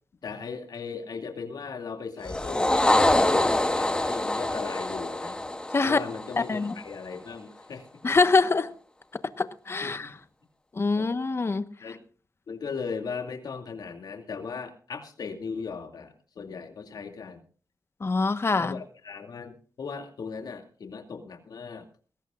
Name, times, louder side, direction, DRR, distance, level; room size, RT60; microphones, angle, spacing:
voice 1, 0.2-5.4 5.8-7.9 9.8-10.1 11.0-11.1 11.8-12.0 12.5-17.4 18.6-21.9, left 5 dB, 75° left, 4 dB, 2.5 m, -38 dB
sound 1, 2.2-6.8, left 1 dB, 15° left, 1.4 m, -25 dB
voice 2, 8.0-8.7 9.4-10.2 10.7-11.6 18.0-18.8, left 3 dB, 40° left, 11 dB, 1.2 m, -24 dB
20.5 x 17.5 x 2.5 m, 0.40 s
wide cardioid pair, 105°, 7 cm